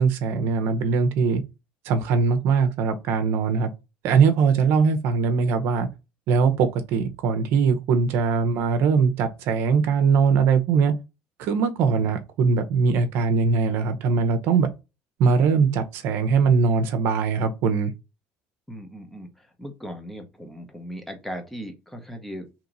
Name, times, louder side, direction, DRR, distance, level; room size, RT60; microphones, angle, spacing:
voice 1, 0.0-1.4 1.9-3.7 4.0-5.9 6.3-10.9 11.4-14.7 15.2-17.9, right 5 dB, 70° right, 0.7 m, -21 dB
voice 2, 18.7-22.5, equal, 5° left, 1.0 m, -38 dB
3.0 x 2.8 x 3.8 m
cardioid pair, 105°, 4 cm